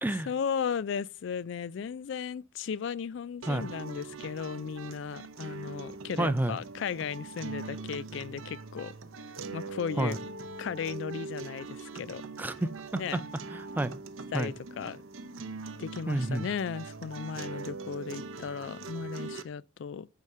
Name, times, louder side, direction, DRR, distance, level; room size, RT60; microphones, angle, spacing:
voice 1, 0.3-8.9 9.5-10.2 10.6-12.2 13.0-13.2 14.3-15.0 15.8-20.1, left 7 dB, 65° left, 0.3 m, -35 dB
sound 1, 3.4-19.4, right 4 dB, 85° right, 0.7 m, -42 dB
voice 2, 6.2-6.6 10.0-10.2 12.4-13.2 13.5-13.9 14.3-14.5 16.1-16.5, right 1 dB, 10° right, 0.4 m, -30 dB
6.6 x 4.8 x 5.4 m
head